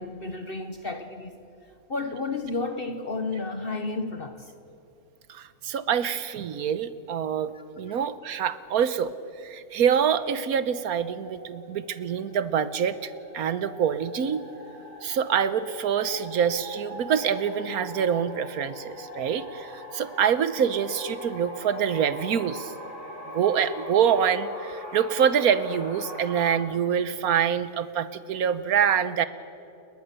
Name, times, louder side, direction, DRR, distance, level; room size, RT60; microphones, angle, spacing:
voice 1, 0.0-1.3 1.9-4.5 7.5-8.0, left 3 dB, 45° left, 7 dB, 1.2 m, -32 dB
voice 2, 5.3-14.4 15.0-22.7 23.3-29.3, right 8 dB, 85° right, 14 dB, 1.4 m, -25 dB
sound 1, 10.4-26.6, left 1 dB, 85° left, 6.0 m, -42 dB
29.5 x 21.0 x 6.8 m, 2.8 s
omnidirectional pair, 1.5 m